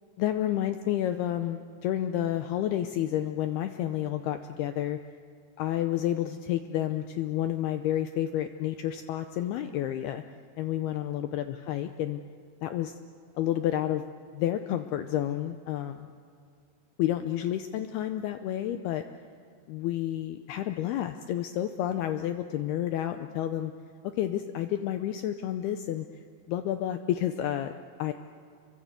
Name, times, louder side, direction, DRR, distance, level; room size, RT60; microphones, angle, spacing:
voice 1, 0.2-5.0 5.6-10.2 10.6-12.2 12.6-12.9 13.4-14.0 14.3-16.1 17.0-19.0 19.7-23.7 24.2-26.1 26.5-27.7 28.0-28.1, left 12 dB, 80° left, 8 dB, 2.3 m, -30 dB
28.0 x 23.0 x 8.2 m, 2.4 s
omnidirectional pair, 5.4 m